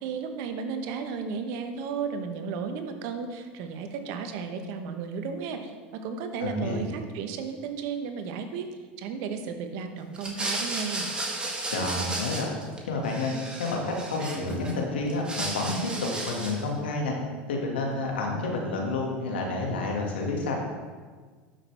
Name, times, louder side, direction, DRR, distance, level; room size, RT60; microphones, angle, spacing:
voice 1, 0.0-8.7 9.0-11.1, right 6 dB, 60° right, 6 dB, 1.1 m, -34 dB
voice 2, 6.4-6.8 11.7-12.5 12.9-17.1 17.5-20.5, left 2 dB, 85° left, 0 dB, 1.9 m, -29 dB
sound 1, 10.1-12.8 13.0-14.7 15.1-16.7, right 2 dB, 15° right, 2.1 m, -33 dB
12.0 x 6.2 x 3.4 m, 1.5 s
hypercardioid pair, 90°, 5 cm